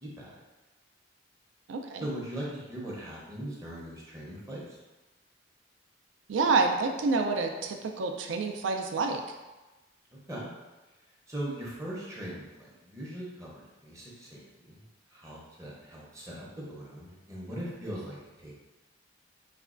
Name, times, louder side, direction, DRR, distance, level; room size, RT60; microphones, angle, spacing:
voice 1, 0.0-0.4 2.0-4.8 10.3-10.5 11.3-18.6, right 1 dB, 15° right, -5 dB, 0.6 m, -40 dB
voice 2, 1.7-2.0 6.3-9.2, right 4 dB, 80° right, 4 dB, 0.4 m, -28 dB
4.1 x 2.2 x 2.4 m, 1.1 s
head